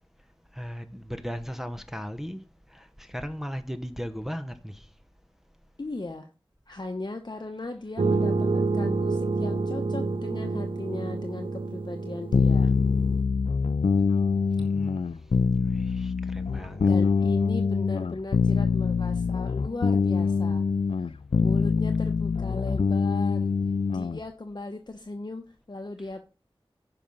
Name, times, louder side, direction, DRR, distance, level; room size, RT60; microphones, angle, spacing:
voice 1, 0.5-4.9 6.7-6.8 14.6-15.2 15.7-16.9, equal, 5° right, 1.0 m, -37 dB
voice 2, 5.8-6.3 6.7-12.7 16.9-20.7 21.0-21.1 21.4-23.5 23.9-26.2, left 2 dB, 50° left, 1.0 m, -37 dB
sound 1, 8.0-13.2, right 3 dB, 65° right, 0.7 m, -28 dB
sound 2, 12.3-24.2, left 5 dB, 80° left, 0.4 m, -24 dB
10.0 x 5.8 x 5.4 m
wide cardioid pair, 55°, 9 cm